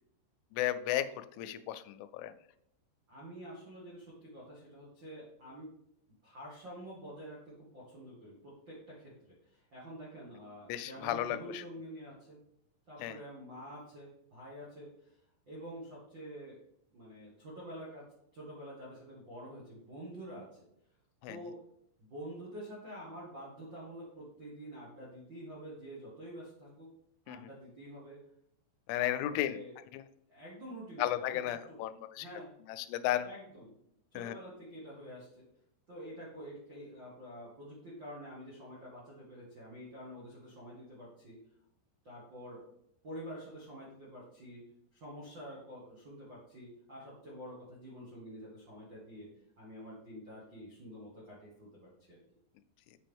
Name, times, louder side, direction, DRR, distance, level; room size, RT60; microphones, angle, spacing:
voice 1, 0.5-2.3 10.7-11.6 13.0-13.2 21.2-21.4 27.3-27.4 28.9-29.6 29.9-30.0 31.0-32.3 32.7-33.3 34.2-34.4, left 13 dB, 90° left, 11 dB, 3.0 m, -34 dB
voice 2, 3.1-5.7 6.2-12.4 12.9-15.2 15.5-16.6 16.9-18.1 18.3-20.6 21.3-21.6 22.0-26.9 27.2-28.2 28.9-29.7 30.3-31.3 31.7-31.8 32.2-32.5 33.2-33.8 34.1-35.4 35.9-41.4 42.0-42.6 43.0-44.7 44.9-49.3 49.6-52.2, equal, 75° right, -7 dB, 1.0 m, -48 dB
7.5 x 5.6 x 3.5 m, 0.76 s
omnidirectional pair, 5.4 m